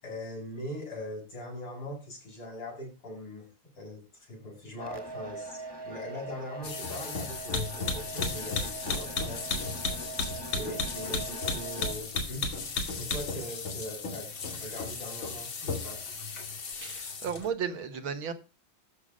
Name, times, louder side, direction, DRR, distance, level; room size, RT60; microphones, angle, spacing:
voice 1, 0.0-3.5 3.7-9.7 10.5-12.5 13.0-16.0, left 1 dB, 85° left, 8.5 m, -41 dB
sound 1, 4.8-11.9, right 3 dB, 10° right, 1.7 m, -42 dB
sound 2, 6.6-17.5, left 4 dB, 65° left, 3.1 m, -34 dB
voice 2, 16.8-18.3, right 7 dB, 70° right, 2.2 m, -34 dB
14.0 x 7.1 x 5.1 m
omnidirectional pair, 2.4 m